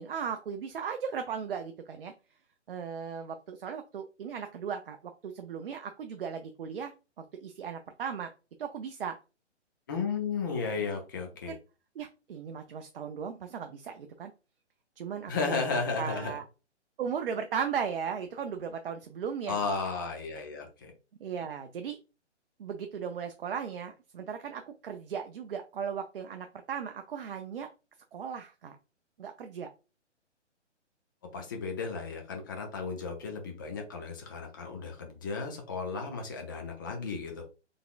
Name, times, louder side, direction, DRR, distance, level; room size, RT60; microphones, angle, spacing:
voice 1, 0.0-2.1 2.7-8.3 8.6-9.2 11.5-11.6 12.0-14.3 15.0-15.6 16.0-16.4 17.0-19.6 21.2-22.0 22.6-27.7 28.1-28.8 29.2-29.7, right 7 dB, 50° right, 6 dB, 0.5 m, -37 dB
voice 2, 9.9-11.5 15.3-16.3 19.5-20.9 31.3-37.4, left 4 dB, 20° left, 3 dB, 0.5 m, -34 dB
4.0 x 3.4 x 2.4 m, 0.31 s
hypercardioid pair, 145°, 36 cm